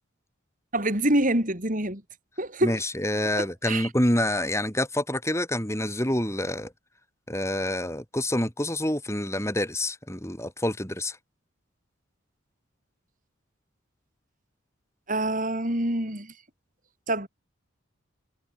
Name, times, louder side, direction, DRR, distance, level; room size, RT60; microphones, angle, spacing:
voice 1, 0.7-2.0 2.4-2.8 3.4-3.9 15.1-16.3 17.1-17.3, right 1 dB, 40° right, 6.1 m, -26 dB
voice 2, 2.6-6.7 7.3-11.2, left 1 dB, 15° left, 5.5 m, -27 dB
head